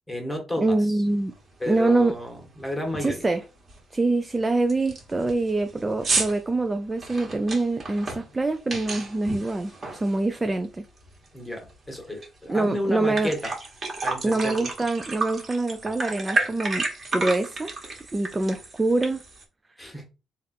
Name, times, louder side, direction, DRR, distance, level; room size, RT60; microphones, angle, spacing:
voice 1, 0.1-1.0 1.6-3.2 11.3-13.5 14.0-14.7 19.8-20.0, left 1 dB, 10° left, 1.4 m, -32 dB
voice 2, 0.6-1.3 1.7-2.2 3.0-3.4 3.9-10.9 12.5-13.3 14.2-16.9 17.1-17.7 18.1-19.2, right 2 dB, 20° right, 0.4 m, -25 dB
sound 1, 1.3-1.4 1.9-2.2 2.4-2.5 2.9-3.3 3.7-3.8 4.3-4.4 4.7-10.6 11.0-12.3 12.6-12.7 13.0-19.4, right 3 dB, 40° right, 1.4 m, -32 dB
3.5 x 2.5 x 4.2 m
cardioid pair, 90°, 0 cm